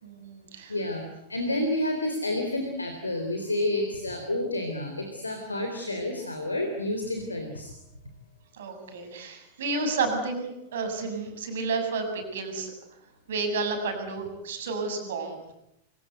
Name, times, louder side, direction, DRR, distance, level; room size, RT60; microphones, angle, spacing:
voice 1, 0.0-0.8 8.5-12.7 13.3-15.5, right 3 dB, 60° right, 5 dB, 6.8 m, -31 dB
voice 2, 0.7-7.7, left 1 dB, 80° left, 5 dB, 3.8 m, -30 dB
26.5 x 25.5 x 8.0 m, 0.83 s
figure-of-eight pair, 90°, 0 cm